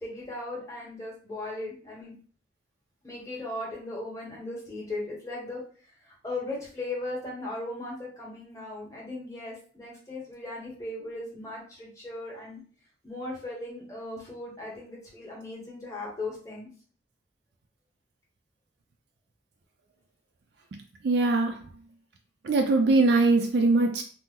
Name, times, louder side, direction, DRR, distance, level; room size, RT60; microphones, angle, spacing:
voice 1, 0.0-2.1 3.0-5.6 6.2-12.6 13.0-16.7, left 2 dB, 15° left, -4 dB, 1.0 m, -37 dB
voice 2, 21.0-21.6 22.4-24.0, right 3 dB, 60° right, 3 dB, 0.4 m, -21 dB
2.9 x 2.0 x 3.6 m, 0.43 s
head